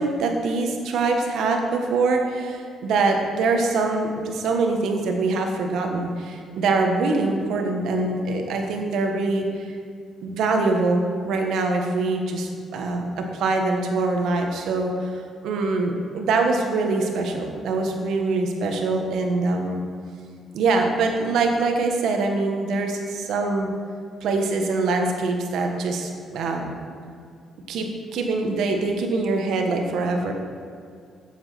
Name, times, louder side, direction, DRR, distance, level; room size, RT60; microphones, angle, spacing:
voice 1, 0.0-9.7 10.2-19.8 20.5-23.7 24.2-26.7 27.7-30.3, right 3 dB, 80° right, 3 dB, 1.3 m, -24 dB
8.1 x 7.3 x 5.8 m, 2.2 s
cardioid pair, 90°, 0 cm